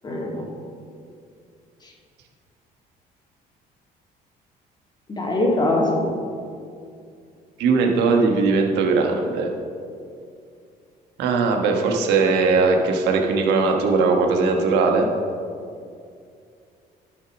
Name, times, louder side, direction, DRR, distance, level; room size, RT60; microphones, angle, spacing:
voice 1, 0.0-0.5 1.8-1.9 5.1-6.1, left 1 dB, 25° left, -1 dB, 2.2 m, -22 dB
voice 2, 7.6-9.5 11.2-15.1, right 4 dB, 85° right, 2 dB, 1.4 m, -19 dB
11.5 x 6.7 x 6.1 m, 2.4 s
cardioid pair, 110°, 17 cm